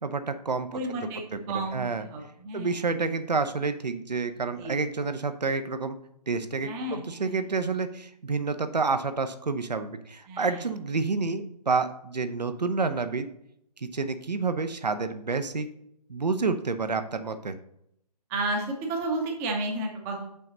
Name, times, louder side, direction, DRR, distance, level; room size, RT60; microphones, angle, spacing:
voice 1, 0.0-0.8 1.3-1.4 1.7-2.0 2.5-6.0 6.3-13.3 13.8-15.7 16.1-17.6, right 4 dB, 80° right, 9 dB, 0.8 m, -29 dB
voice 2, 0.7-1.2 1.5-2.9 4.6-4.8 6.6-7.4 10.3-10.7 18.3-20.3, right 2 dB, 10° right, 1 dB, 0.6 m, -32 dB
6.2 x 5.7 x 3.9 m, 0.75 s
figure-of-eight pair, 145°, 21 cm